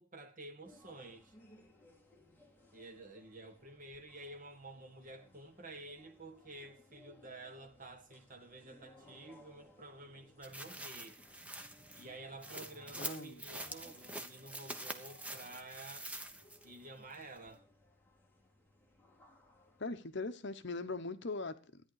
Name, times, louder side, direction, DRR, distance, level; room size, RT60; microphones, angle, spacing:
voice 1, 0.0-1.4 2.7-11.2 12.0-16.1 16.6-17.6, right 2 dB, 40° right, 1.8 m, -51 dB
sound 1, 0.6-19.9, left 2 dB, 10° left, 2.4 m, -63 dB
sound 2, 10.4-16.8 17.1-17.2, right 1 dB, 5° right, 0.9 m, -46 dB
voice 2, 13.0-13.4 19.8-21.8, left 3 dB, 55° left, 0.9 m, -40 dB
13.5 x 10.0 x 4.8 m
head